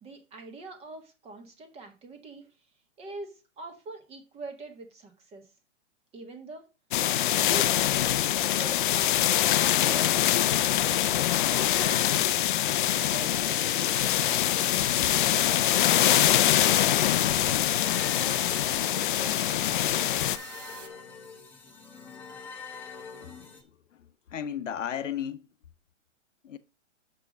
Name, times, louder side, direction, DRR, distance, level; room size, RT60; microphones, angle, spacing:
voice 1, 0.0-2.5 3.0-5.5 6.1-6.7 7.4-8.1 8.4-9.2 9.5-11.1 11.5-12.3 12.7-13.7 14.4-16.5 17.0-18.4 18.7-20.0, right 3 dB, 15° right, 1.4 m, -44 dB
sound 1, 6.9-20.4, left 12 dB, 45° left, 0.5 m, -24 dB
sound 2, 8.8-23.6, left 5 dB, 5° left, 1.1 m, -45 dB
sound 3, 13.0-20.9, right 7 dB, 90° right, 1.2 m, -45 dB
voice 2, 24.3-25.4 26.4-26.6, left 9 dB, 85° left, 0.9 m, -34 dB
6.7 x 4.8 x 5.1 m
hypercardioid pair, 145°, 36 cm